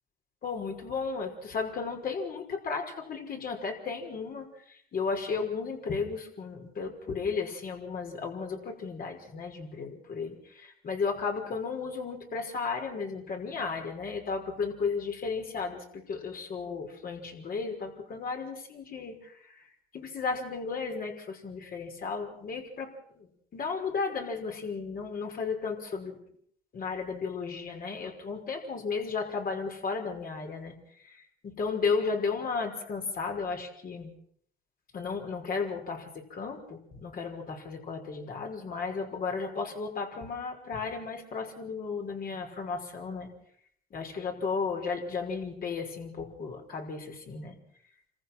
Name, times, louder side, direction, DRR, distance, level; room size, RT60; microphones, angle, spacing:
voice 1, 0.4-19.6 19.9-26.2 26.7-30.7 31.0-34.1 34.9-43.3 43.9-47.6, left 5 dB, 50° left, 2 dB, 5.7 m, -34 dB
28.0 x 14.5 x 6.3 m, 0.65 s
cardioid pair, 90°, 19 cm